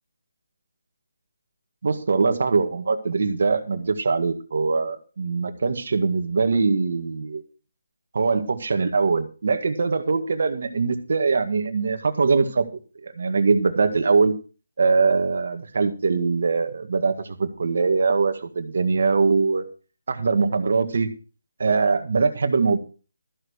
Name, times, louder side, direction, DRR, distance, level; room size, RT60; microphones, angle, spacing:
voice 1, 1.8-7.4 8.1-12.7 13.0-14.3 14.8-19.6 20.1-21.1 21.6-22.8, right 4 dB, 50° right, 6 dB, 1.8 m, -22 dB
13.5 x 6.5 x 6.5 m, 0.36 s
hypercardioid pair, 175°, 0 cm